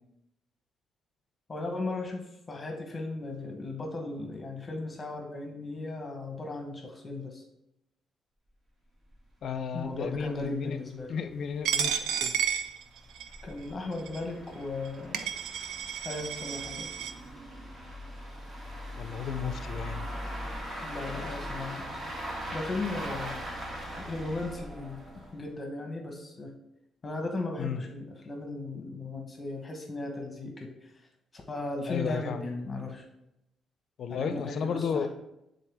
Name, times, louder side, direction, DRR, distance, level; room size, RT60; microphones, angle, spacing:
voice 1, 1.5-7.4 9.7-11.1 13.4-15.2 16.0-16.9 20.8-22.1 22.5-23.4 24.0-26.5 27.0-30.9 31.3-33.0 34.1-35.1, left 2 dB, 30° left, 3 dB, 1.0 m, -37 dB
sound 1, 9.1-9.2 9.4-9.5 10.0-10.1 10.4-10.5 11.1-25.5, equal, 30° right, 2.3 m, -40 dB
voice 2, 9.4-10.8 11.1-12.3 19.0-20.1 27.6-27.8 31.9-32.4 34.0-35.1, left 6 dB, 65° left, 10 dB, 0.5 m, -33 dB
Coin (dropping), 11.7-13.4 14.1-14.2 14.9-15.0 15.1-17.1, right 8 dB, 90° right, 0.5 m, -31 dB
8.9 x 3.8 x 3.4 m, 0.85 s
cardioid pair, 90°, 0 cm